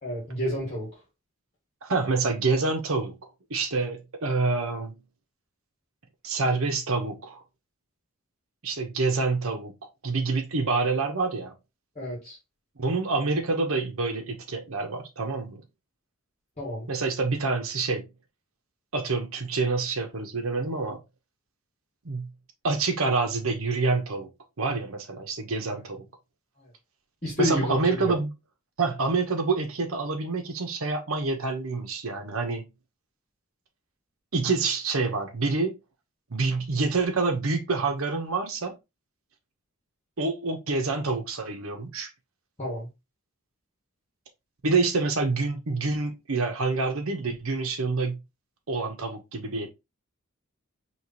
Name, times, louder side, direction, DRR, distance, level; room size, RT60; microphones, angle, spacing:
voice 1, 0.0-0.9 12.0-12.4 16.6-16.9 27.2-28.2 42.6-42.9, left 1 dB, 30° left, 1.9 m, -29 dB
voice 2, 1.8-3.2 3.5-5.0 6.2-7.4 8.6-9.7 10.0-11.5 12.8-15.6 16.9-18.1 18.9-21.0 22.0-22.3 22.6-24.3 24.6-26.1 27.4-28.3 28.8-32.7 34.3-35.7 36.3-38.7 40.2-42.1 44.6-48.2 48.7-49.7, right 3 dB, 70° right, 1.0 m, -27 dB
4.8 x 3.2 x 2.9 m
head